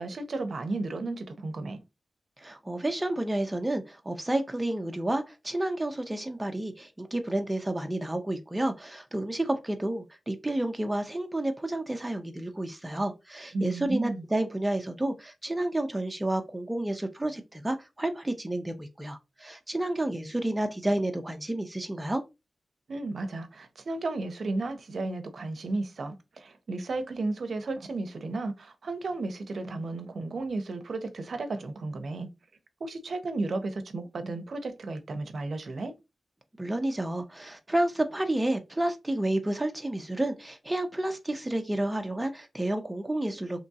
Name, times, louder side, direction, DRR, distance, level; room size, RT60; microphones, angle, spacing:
voice 1, 0.0-1.8 13.5-14.2 22.9-32.3 32.8-35.9, right 2 dB, 60° right, 0.6 m, -33 dB
voice 2, 2.4-22.2 36.6-43.6, right 1 dB, 15° right, 0.4 m, -30 dB
3.5 x 3.0 x 2.7 m
wide cardioid pair, 130°, 0 cm